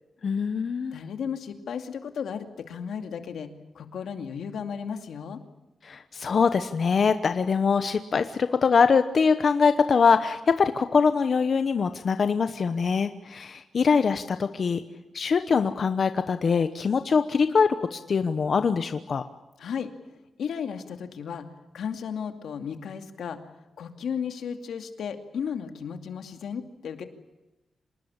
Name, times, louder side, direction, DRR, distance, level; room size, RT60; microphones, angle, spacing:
voice 1, 0.2-1.0 5.8-14.8 15.1-19.2, left 5 dB, 45° left, 9 dB, 1.0 m, -23 dB
voice 2, 0.9-5.4 19.6-19.9 20.4-21.5 21.7-23.5 23.8-27.0, left 7 dB, 80° left, 7 dB, 2.5 m, -34 dB
26.5 x 20.0 x 8.8 m, 1.0 s
wide cardioid pair, 155°, 0 cm